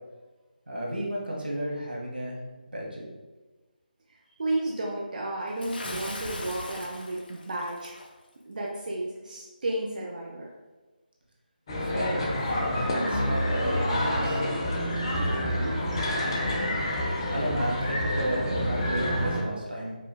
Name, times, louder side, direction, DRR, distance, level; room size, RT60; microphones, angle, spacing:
voice 1, 0.7-2.4 2.7-3.1 11.9-12.6 13.0-14.4 17.3-20.0, equal, 90° right, -4 dB, 1.2 m, -33 dB
voice 2, 4.4-8.0 8.5-10.5 15.2-16.1, right 1 dB, 55° right, -3 dB, 0.5 m, -33 dB
Bathtub (filling or washing) / Splash splatter, 5.6-8.1, left 1 dB, 70° left, 0.6 m, -39 dB
sound 1, 11.7-19.4, left 1 dB, 30° left, 0.6 m, -28 dB
4.9 x 2.2 x 2.2 m, 1.2 s
figure-of-eight pair, 165°, 5 cm